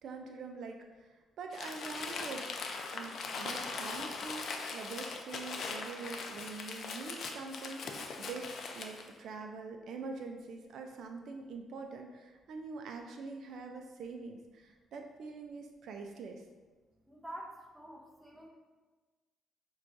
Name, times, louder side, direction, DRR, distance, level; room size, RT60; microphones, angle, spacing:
voice 1, 0.0-2.5 2.9-8.5 8.7-16.5, right 4 dB, 70° right, 4 dB, 0.3 m, -44 dB
Crumpling crinkling, 1.5-9.1, left 4 dB, 60° left, 0.4 m, -40 dB
voice 2, 17.1-18.5, right 1 dB, 5° right, -1 dB, 0.7 m, -47 dB
5.9 x 2.2 x 2.5 m, 1.3 s
cardioid pair, 90°, 0 cm